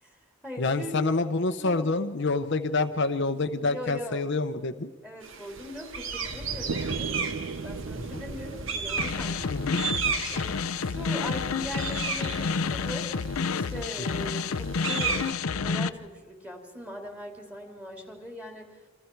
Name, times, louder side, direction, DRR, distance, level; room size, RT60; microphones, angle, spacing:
voice 1, 0.0-1.0 1.6-1.9 3.6-4.2 5.0-7.1 7.6-9.6 10.3-13.1 13.5-15.2 15.6-18.8, left 1 dB, 5° right, 3 dB, 3.0 m, -40 dB
voice 2, 0.6-4.9 8.1-8.2 9.5-9.8, left 3 dB, 55° left, 8 dB, 0.8 m, -27 dB
sound 1, 5.2-15.3, right 5 dB, 65° right, 1.6 m, -35 dB
sound 2, 6.7-10.6, right 4 dB, 80° right, 0.7 m, -37 dB
sound 3, 9.0-15.9, left 5 dB, 90° left, 0.6 m, -30 dB
29.0 x 26.0 x 4.6 m, 1.4 s
head